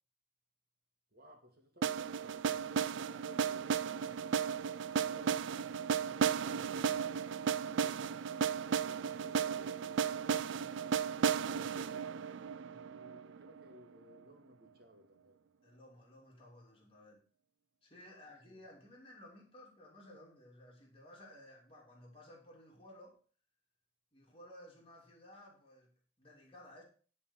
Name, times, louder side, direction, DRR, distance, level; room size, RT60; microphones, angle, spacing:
voice 1, 1.1-7.0 7.7-8.3 8.8-12.5 12.9-15.4 18.1-18.6, equal, 55° right, 2.0 m, -60 dB
sound 1, 1.8-13.7, right 7 dB, 80° right, 0.4 m, -35 dB
voice 2, 15.6-17.2 17.8-23.2 24.1-25.9 26.2-26.8, left 1 dB, 30° left, 2.9 m, -56 dB
11.0 x 4.2 x 7.1 m
head